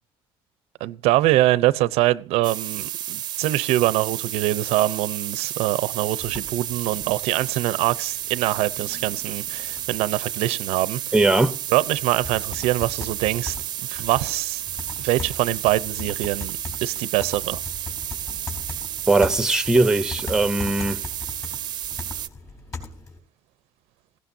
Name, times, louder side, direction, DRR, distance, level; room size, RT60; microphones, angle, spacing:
voice 1, 0.8-11.0 11.7-13.6 13.9-14.6 15.0-17.6, right 16 dB, 85° right, 0.7 m, -23 dB
sound 1, 2.4-22.3, right 12 dB, 45° right, 0.6 m, -32 dB
sound 2, 6.2-23.2, left 4 dB, 30° left, 3.7 m, -40 dB
voice 2, 11.1-11.5 19.1-21.0, right 2 dB, 5° right, 0.7 m, -19 dB
18.0 x 16.5 x 2.7 m
cardioid pair, 165°, 10 cm